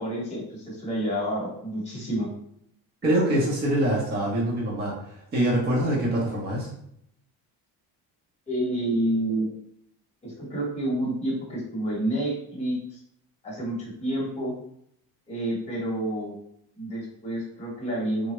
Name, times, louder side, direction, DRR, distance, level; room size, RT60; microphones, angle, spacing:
voice 1, 0.0-2.3 8.5-9.5 10.2-13.0 13.4-14.5 15.3-16.3 16.8-18.3, right 1 dB, 15° left, -5 dB, 0.9 m, -29 dB
voice 2, 3.0-6.7, right 1 dB, 25° right, -4 dB, 0.7 m, -24 dB
3.4 x 2.0 x 3.0 m, 0.73 s
cardioid pair, 180°, 39 cm